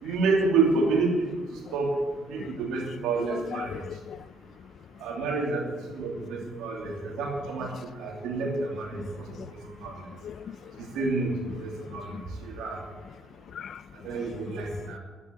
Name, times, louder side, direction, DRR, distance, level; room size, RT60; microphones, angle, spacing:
voice 1, 0.0-2.0 2.3-3.8 5.0-5.7 5.9-10.1 10.8-12.8 13.9-15.0, right 3 dB, 90° right, 2.8 m, -29 dB
voice 2, 3.3-4.3 9.0-9.1 9.3-9.5 10.2-10.8 11.9-12.2 13.5-13.8 14.5-14.6, left 8 dB, 60° left, 0.5 m, -39 dB
11.5 x 9.5 x 8.8 m
cardioid pair, 90°, 0 cm